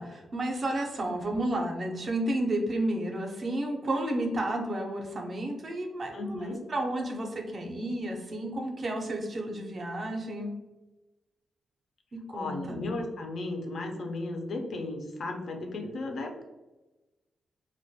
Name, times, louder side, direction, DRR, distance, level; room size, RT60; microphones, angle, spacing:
voice 1, 0.0-10.5 12.1-12.9, right 1 dB, 35° right, 2 dB, 0.4 m, -32 dB
voice 2, 6.1-6.6 12.3-16.4, left 2 dB, 55° left, 3 dB, 0.3 m, -35 dB
2.2 x 2.1 x 2.6 m, 1.1 s
wide cardioid pair, 160°, 0 cm